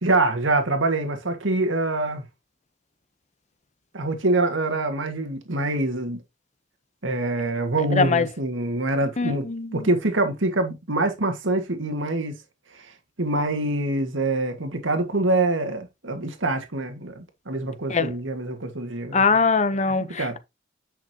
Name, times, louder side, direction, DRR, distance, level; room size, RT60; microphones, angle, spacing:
voice 1, 0.0-2.2 3.9-6.2 7.0-9.5 9.7-12.4 12.7-12.9 13.2-19.2 20.2-20.4, right 2 dB, 80° right, 1.9 m, -25 dB
voice 2, 7.9-8.3 9.2-9.9 17.9-18.1 19.1-20.4, left 4 dB, 35° left, 0.9 m, -22 dB
10.0 x 6.3 x 2.9 m
head